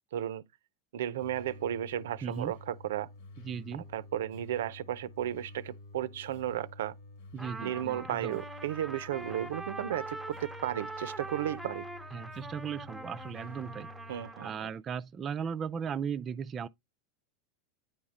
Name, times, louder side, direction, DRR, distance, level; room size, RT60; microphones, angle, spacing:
voice 1, 0.1-0.5 0.9-3.1 3.7-6.9 7.6-11.9 14.1-14.7, right 11 dB, 85° right, 0.5 m, -34 dB
sound 1, 1.2-14.3, left 2 dB, 70° left, 1.3 m, -50 dB
voice 2, 2.2-2.5 3.4-3.9 7.3-8.4 12.1-13.9 14.4-16.7, right 7 dB, 25° right, 0.4 m, -37 dB
Trumpet, 7.4-14.6, right 2 dB, ahead, 0.7 m, -43 dB
9.4 x 3.6 x 4.1 m
supercardioid pair, 130°, 0 cm